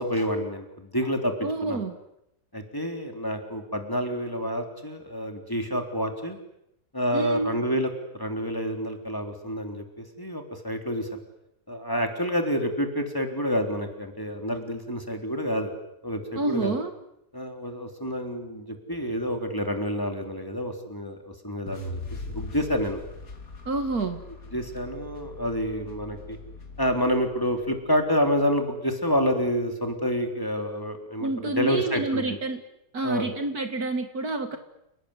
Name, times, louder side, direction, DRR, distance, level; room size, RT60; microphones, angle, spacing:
voice 1, 0.0-1.3 1.6-1.8 2.5-6.4 6.9-11.1 11.7-15.7 16.0-16.7 17.3-22.0 22.3-23.0 24.5-26.4 26.8-32.4 33.0-33.4, equal, 10° left, 4 dB, 3.6 m, -28 dB
voice 2, 1.4-1.9 7.1-7.5 16.4-16.9 23.7-24.2 31.2-32.6 32.9-34.6, right 2 dB, 55° right, 7 dB, 2.4 m, -28 dB
sound 1, 21.7-27.8, left 2 dB, 50° left, 3.2 m, -40 dB
30.0 x 19.5 x 10.0 m, 0.82 s
omnidirectional pair, 1.9 m